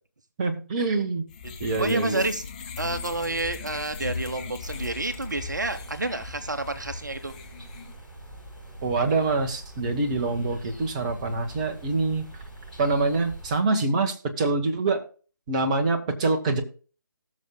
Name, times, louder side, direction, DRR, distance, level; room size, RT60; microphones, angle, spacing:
voice 1, 0.4-1.2 1.6-2.2 8.8-12.2 12.8-15.0 15.5-16.6, right 3 dB, 20° right, 4 dB, 1.2 m, -25 dB
sound 1, 1.3-7.9, left 5 dB, 25° left, 1.1 m, -38 dB
voice 2, 1.4-2.4 2.8-7.3, right 2 dB, 60° right, 9 dB, 1.0 m, -29 dB
sound 2, 4.6-13.6, right 2 dB, ahead, 5.6 m, -44 dB
19.0 x 6.5 x 2.2 m, 0.37 s
figure-of-eight pair, 150°, 11 cm